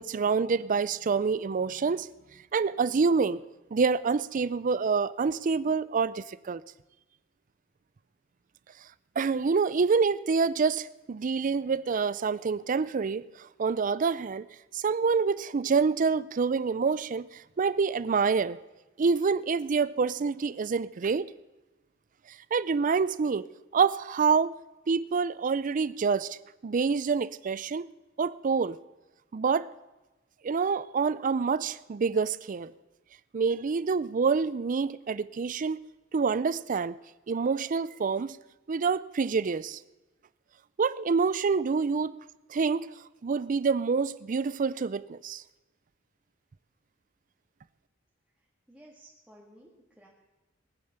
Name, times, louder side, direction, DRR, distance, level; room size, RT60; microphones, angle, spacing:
voice 1, 0.0-2.1 2.5-3.4 3.7-6.6 9.2-14.5 14.7-18.6 19.0-21.3 22.5-24.5 24.9-26.4 26.6-27.9 28.2-28.8 29.3-29.7 30.4-32.7 33.3-35.8 36.1-37.0 37.3-38.4 38.7-39.8 40.8-42.1 42.5-42.9 43.2-45.4, right 5 dB, 40° right, 0.4 m, -27 dB
voice 2, 48.4-50.1, right 1 dB, 5° right, 1.9 m, -56 dB
20.5 x 9.0 x 6.7 m
head